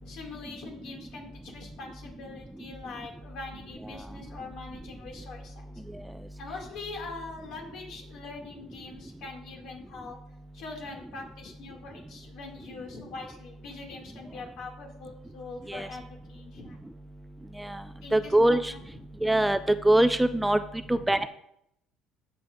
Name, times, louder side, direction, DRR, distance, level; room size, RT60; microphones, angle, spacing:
voice 1, 0.0-5.8 6.4-10.2 10.5-16.8 18.0-18.8 20.8-21.2, left 3 dB, 70° left, 1 dB, 2.4 m, -43 dB
voice 2, 18.1-18.7 19.2-19.6 19.8-20.6 20.9-21.3, right 1 dB, 5° right, 11 dB, 0.3 m, -23 dB
17.0 x 5.7 x 2.6 m, 0.74 s
cardioid pair, 125°, 0 cm